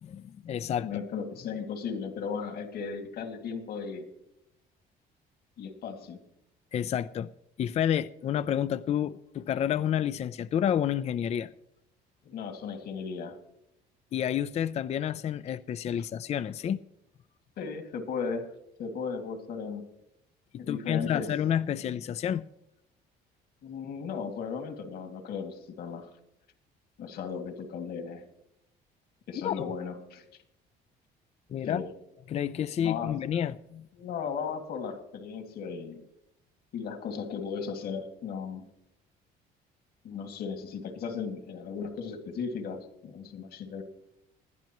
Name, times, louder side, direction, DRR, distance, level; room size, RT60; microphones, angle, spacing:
voice 1, 0.0-0.9 6.7-7.3 7.6-11.5 14.1-16.8 20.7-22.4 29.4-29.6 31.5-31.8 32.3-33.9, left 9 dB, 40° left, 0.4 m, -29 dB
voice 2, 0.8-4.1 5.6-6.2 12.2-13.4 17.6-18.5 18.8-19.8 20.6-21.3 23.6-26.1 27.0-28.2 29.3-30.2 31.6-31.9 32.8-33.1 33.9-36.0 36.7-38.7 40.0-43.8, left 6 dB, 70° left, 2.1 m, -36 dB
20.0 x 12.0 x 3.0 m
cardioid pair, 110°, 17 cm